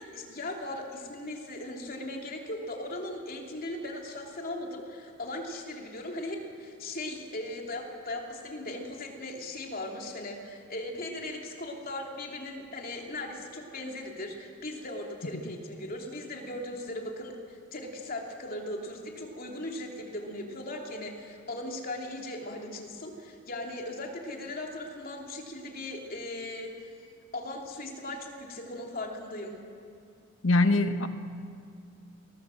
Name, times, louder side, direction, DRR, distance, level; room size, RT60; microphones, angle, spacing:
voice 1, 0.0-26.9 27.3-29.6, left 1 dB, 45° left, 1 dB, 3.0 m, -38 dB
voice 2, 30.4-31.1, left 2 dB, 70° left, 9 dB, 1.2 m, -23 dB
19.5 x 18.5 x 7.7 m, 2.3 s
head